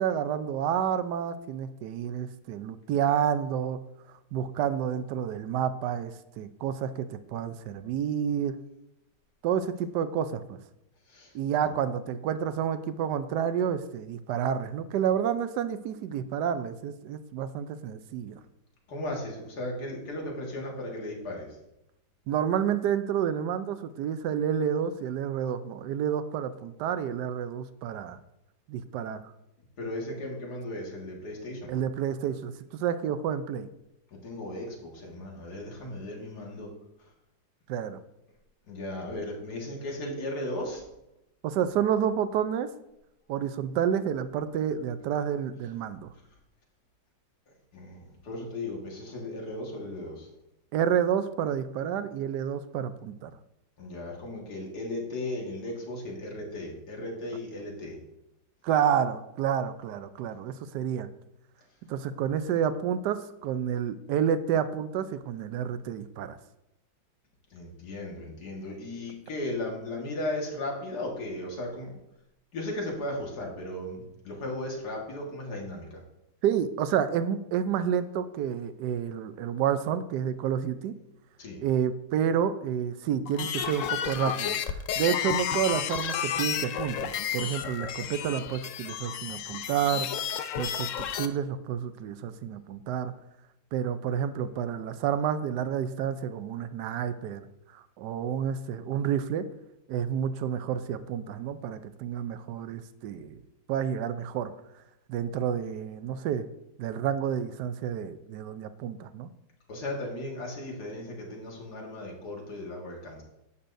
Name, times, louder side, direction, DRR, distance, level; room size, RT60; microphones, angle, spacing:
voice 1, 0.0-3.8 4.3-8.6 9.4-10.6 11.3-18.4 22.3-28.2 28.7-29.2 31.7-33.7 37.7-38.0 41.4-42.7 43.3-46.1 50.7-53.3 58.6-61.1 61.8-66.4 76.4-81.0 81.6-90.1 90.6-93.1 93.7-97.5 97.7-99.5 99.9-103.4 103.7-104.5 105.1-106.5 106.8-109.3, right 8 dB, 70° right, 12 dB, 1.1 m, -29 dB
voice 2, 11.1-11.4 18.9-21.6 29.8-31.7 34.1-36.7 37.0-37.1 38.7-40.8 47.7-50.3 53.8-58.0 67.5-71.9 72.5-76.0 81.4-81.6 109.7-113.2, left 1 dB, 60° left, -1 dB, 2.2 m, -36 dB
sound 1, 83.3-91.3, left 9 dB, 75° left, 0.7 m, -32 dB
11.0 x 8.4 x 2.6 m, 0.88 s
omnidirectional pair, 2.0 m